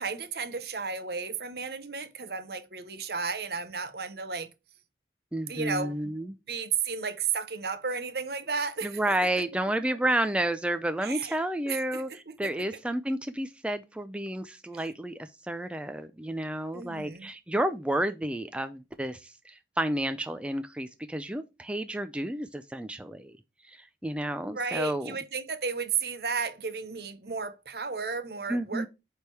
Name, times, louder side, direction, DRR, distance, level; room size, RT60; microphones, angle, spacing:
voice 1, 0.0-4.5 5.5-6.1 6.5-9.2 11.0-11.4 11.7-12.7 14.7-14.9 16.7-17.3 24.5-28.9, right 5 dB, 60° right, 0.9 m, -33 dB
voice 2, 5.3-6.3 8.8-23.3 23.6-25.2 28.5-28.9, right 1 dB, 5° right, 0.4 m, -31 dB
8.7 x 3.5 x 4.6 m
head